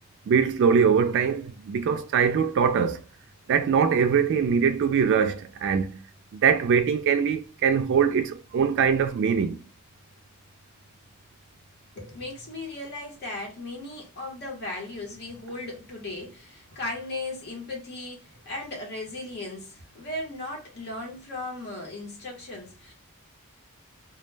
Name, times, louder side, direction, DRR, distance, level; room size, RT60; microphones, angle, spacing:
voice 1, 0.3-3.0 3.5-6.0 6.3-9.6, right 6 dB, 55° right, 0.3 m, -22 dB
voice 2, 12.0-22.9, left 2 dB, 50° left, 0.9 m, -37 dB
2.2 x 2.1 x 3.2 m
head